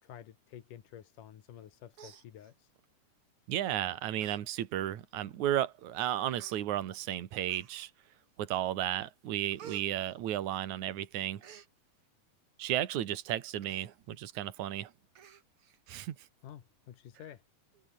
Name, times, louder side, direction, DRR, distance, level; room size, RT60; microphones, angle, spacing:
voice 1, 0.0-2.7 16.4-17.4, left 10 dB, 85° left, 3.3 m, -51 dB
Human voice, 1.5-1.7 1.9-2.9 3.6-3.8 4.2-4.4 4.8-4.9 5.7-5.8 6.4-6.6 7.5-8.0 8.5-8.9 9.1-10.8 11.1-11.7 13.6-13.9 14.3-14.4 14.7-14.8 15.2-15.8 16.2-16.3, right 8 dB, 50° right, 2.3 m, -53 dB
voice 2, 3.5-7.9 8.4-11.4 12.6-14.9 15.9-16.2, right 12 dB, 70° right, 2.9 m, -33 dB
omnidirectional pair, 3.7 m